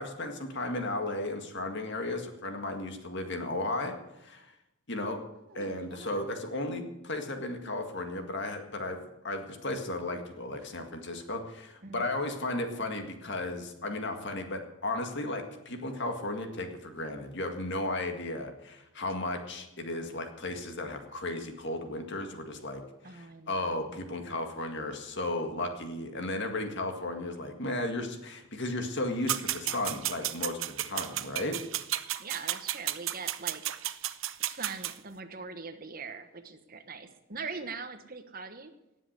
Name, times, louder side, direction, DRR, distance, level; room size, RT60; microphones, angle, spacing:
voice 1, 0.0-4.5 4.9-5.2 5.5-31.6, left 2 dB, 50° left, 5 dB, 1.9 m, -35 dB
voice 2, 5.5-6.2 11.8-12.1 23.0-23.9 32.2-33.6 34.4-38.7, right 4 dB, 40° right, 8 dB, 1.2 m, -42 dB
sound 1, 29.3-34.9, right 13 dB, 60° right, 0.7 m, -33 dB
18.5 x 7.5 x 8.2 m, 0.91 s
head